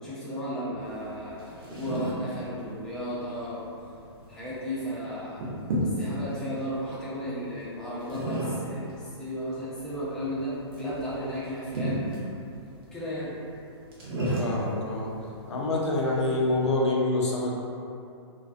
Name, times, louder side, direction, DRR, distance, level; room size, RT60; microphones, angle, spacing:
voice 1, 0.0-3.6 4.3-5.4 6.0-12.2 12.9-13.3, equal, 5° left, -10 dB, 0.5 m, -34 dB
sound 1, 0.8-16.7, right 1 dB, 55° right, 0.7 m, -36 dB
voice 2, 14.4-15.1 15.5-17.5, left 2 dB, 75° left, -3 dB, 0.5 m, -26 dB
2.5 x 2.2 x 2.3 m, 2.5 s
hypercardioid pair, 120°, 15 cm